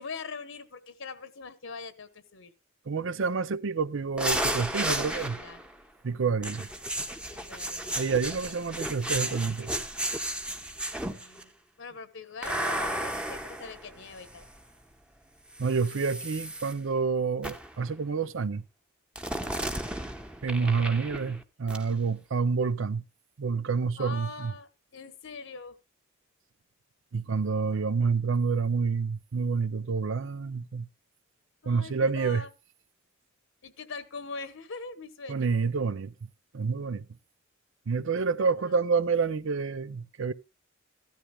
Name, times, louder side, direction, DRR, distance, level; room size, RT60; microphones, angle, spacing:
voice 1, 0.0-2.5 5.1-5.6 7.3-8.0 11.0-14.5 19.3-19.6 24.0-25.8 31.6-32.5 33.6-35.5 38.4-38.7, left 4 dB, 65° left, 1.1 m, -42 dB
voice 2, 2.9-5.4 6.0-6.7 8.0-9.8 15.6-18.6 20.4-23.0 23.4-24.5 27.1-30.9 31.7-32.4 35.3-36.1 36.5-37.1 37.9-40.3, right 5 dB, 65° right, 0.6 m, -28 dB
sound 1, 4.2-5.7 6.4-11.4 12.4-14.6 15.5-16.7 17.4-17.8 19.2-21.4 21.7-21.8, right 1 dB, 5° right, 1.0 m, -33 dB
15.5 x 13.5 x 2.3 m
head